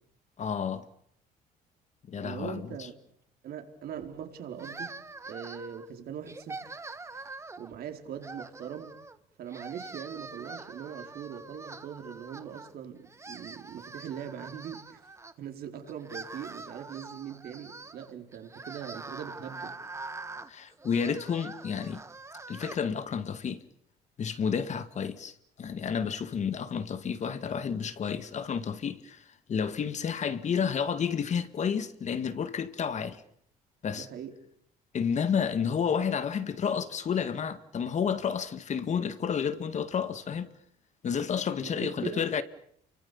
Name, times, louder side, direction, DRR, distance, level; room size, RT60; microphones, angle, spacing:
voice 1, 0.4-0.9 2.1-2.9 20.5-22.0 22.5-23.6 24.2-25.3 25.6-33.2 33.8-34.1 34.9-40.5 41.0-42.4, left 7 dB, 45° left, 2.0 m, -31 dB
voice 2, 2.1-2.9 3.4-5.0 5.3-6.7 7.1-7.2 7.6-8.9 9.4-15.0 15.4-19.8 33.9-34.3 41.6-42.3, right 8 dB, 65° right, 4.5 m, -41 dB
sound 1, 4.6-5.9 6.3-7.7 8.2-9.2 9.5-12.7 13.0-15.3 15.9-22.8, right 3 dB, 15° right, 1.4 m, -44 dB
29.5 x 24.0 x 7.2 m
cardioid pair, 110°, 17 cm